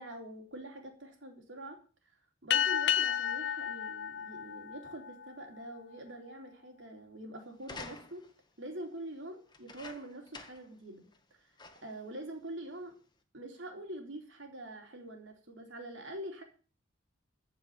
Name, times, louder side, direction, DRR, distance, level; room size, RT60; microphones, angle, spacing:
voice 1, 0.0-1.8 2.4-8.3 8.6-11.5 11.8-12.9 13.3-16.4, right 1 dB, 60° right, 3 dB, 3.9 m, -45 dB
sound 1, 2.5-5.4, left 9 dB, 60° left, 0.6 m, -32 dB
sound 2, 7.6-8.4 9.5-10.7 11.1-11.2 11.6-12.0 12.8-12.9, left 3 dB, 20° left, 1.5 m, -49 dB
15.0 x 5.8 x 9.6 m, 0.38 s
head